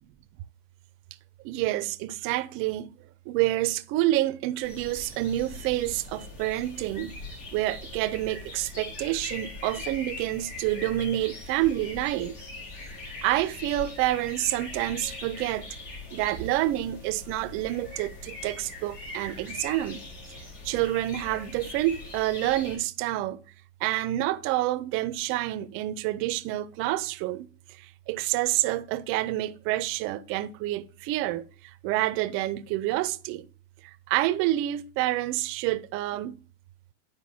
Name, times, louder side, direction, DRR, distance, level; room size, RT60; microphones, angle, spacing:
voice 1, 1.4-2.9 3.3-7.2 7.5-12.4 13.2-15.7 16.1-20.1 20.3-20.4 20.6-23.4 23.8-27.5 27.7-31.5 31.8-33.5 34.1-36.4, right 15 dB, 35° right, 0.5 m, -28 dB
sound 1, 4.6-22.8, left 3 dB, 55° left, 3.8 m, -41 dB
10.0 x 4.9 x 2.7 m
supercardioid pair, 135°, 36 cm